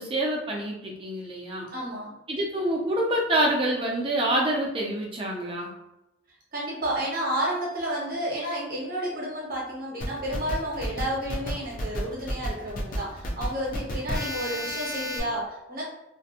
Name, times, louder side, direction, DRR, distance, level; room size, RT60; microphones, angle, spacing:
voice 1, 0.0-1.7 2.3-5.7, right 1 dB, 25° right, -2 dB, 0.5 m, -26 dB
voice 2, 1.7-2.2 6.5-15.8, right 1 dB, 45° right, -4 dB, 0.8 m, -31 dB
sound 1, 10.0-15.2, equal, 45° left, 0.4 m, -32 dB
2.5 x 2.1 x 2.7 m, 0.91 s
head